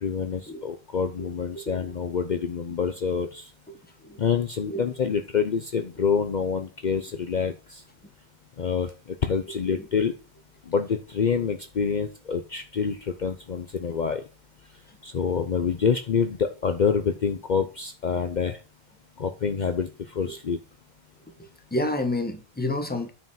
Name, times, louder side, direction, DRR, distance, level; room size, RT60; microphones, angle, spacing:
voice 1, 0.0-3.5 4.2-7.8 8.6-10.1 10.7-14.2 15.0-18.6 19.2-20.6, left 6 dB, 50° left, 0.8 m, -27 dB
voice 2, 21.7-23.1, left 1 dB, 10° left, 1.2 m, -29 dB
9.3 x 5.1 x 5.6 m
omnidirectional pair, 1.1 m